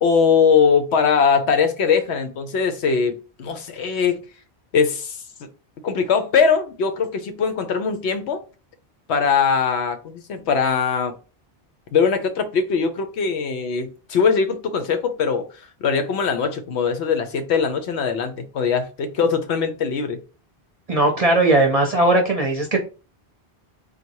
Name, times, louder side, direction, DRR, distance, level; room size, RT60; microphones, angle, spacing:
voice 1, 0.0-4.2 4.7-5.2 5.8-8.4 9.1-11.1 11.9-15.5 15.8-20.2, left 6 dB, 85° left, 1.0 m, -21 dB
voice 2, 20.9-22.8, right 2 dB, 40° right, 0.7 m, -18 dB
3.9 x 2.3 x 4.5 m
omnidirectional pair, 1.1 m